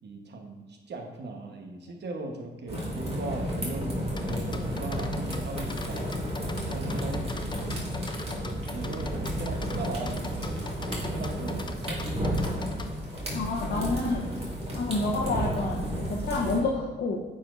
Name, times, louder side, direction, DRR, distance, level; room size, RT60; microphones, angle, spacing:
voice 1, 0.0-6.2 6.7-7.9 8.7-10.8 11.0-12.0, right 3 dB, 60° right, 3 dB, 1.0 m, -38 dB
sound 1, 2.7-16.6, equal, 30° right, 1.9 m, -32 dB
sound 2, 4.2-12.9, left 4 dB, 25° left, 0.5 m, -40 dB
voice 2, 13.3-14.2 14.7-17.2, left 3 dB, 60° left, -3 dB, 0.8 m, -29 dB
8.8 x 4.2 x 2.5 m, 1.2 s
cardioid pair, 65°, 19 cm